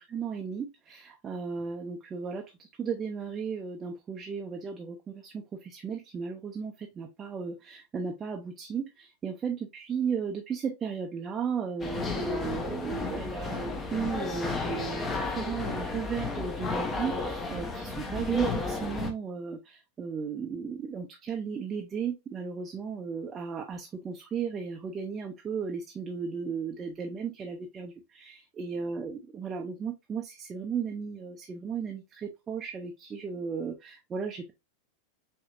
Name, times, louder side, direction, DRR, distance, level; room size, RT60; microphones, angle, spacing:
voice 1, 0.1-34.5, right 6 dB, 20° right, 0.6 m, -35 dB
sound 1, 11.8-19.1, left 3 dB, 20° left, 0.8 m, -33 dB
5.6 x 2.7 x 2.5 m
figure-of-eight pair, 90°, 0 cm